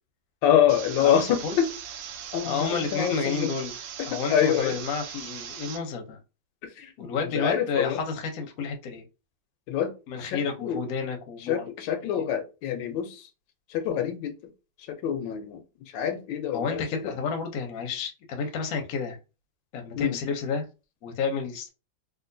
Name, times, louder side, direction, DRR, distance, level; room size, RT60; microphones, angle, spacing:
voice 1, 0.4-1.7 2.3-3.5 4.1-4.8 6.8-8.0 9.7-9.9 10.2-10.8 11.4-13.3 13.7-14.3 15.0-15.6 15.9-17.1 20.0-20.2, left 9 dB, 85° left, 1.4 m, -26 dB
sound 1, 0.7-5.8, right 8 dB, 90° right, 1.4 m, -39 dB
voice 2, 1.0-1.5 2.4-3.7 4.1-6.2 7.0-9.0 10.1-11.6 12.0-12.2 16.5-19.2 19.7-20.7 21.0-21.7, left 5 dB, 60° left, 1.0 m, -30 dB
3.6 x 2.4 x 2.6 m
omnidirectional pair, 2.0 m